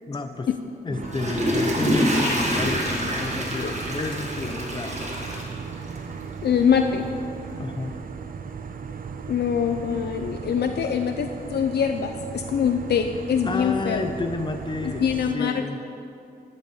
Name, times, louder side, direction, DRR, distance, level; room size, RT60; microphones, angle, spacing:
voice 1, 0.1-0.5 0.8-5.0 7.6-8.0 10.7-10.9 13.4-15.1 15.3-15.8, left 3 dB, 30° left, 7 dB, 0.6 m, -31 dB
Water / Toilet flush, 0.9-6.2 6.6-6.7, equal, 40° right, 1.5 m, -26 dB
sound 1, 0.9-15.4, right 6 dB, 60° right, 0.5 m, -37 dB
voice 2, 6.4-7.1 9.3-14.1 15.0-15.7, left 7 dB, 75° left, 5 dB, 0.4 m, -24 dB
11.5 x 4.1 x 8.0 m, 2.6 s
wide cardioid pair, 155°, 17 cm